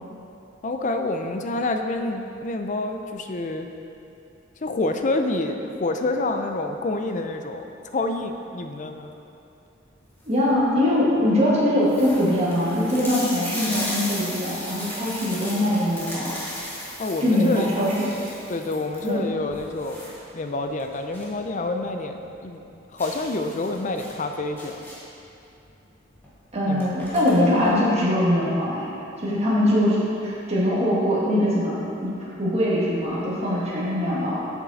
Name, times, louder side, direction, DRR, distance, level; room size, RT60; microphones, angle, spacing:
voice 1, 0.6-3.7 4.6-7.7 7.9-9.1 17.0-17.7 18.5-20.0 20.3-22.6 22.9-24.8 26.7-26.9, left 2 dB, 40° left, 6 dB, 0.5 m, -27 dB
sound 1, 10.0-10.5 11.1-11.2 11.4-11.5 11.8-21.4 21.7-21.8 22.2-22.3 23.0-25.2 26.2-26.3 26.6-27.7, equal, 10° left, 1.4 m, -36 dB
voice 2, 10.2-16.4 17.2-18.1 19.0-19.2 26.5-28.9 29.2-31.8 32.0-34.4, left 1 dB, 30° right, -7 dB, 1.7 m, -22 dB
7.4 x 7.3 x 4.0 m, 2.8 s
head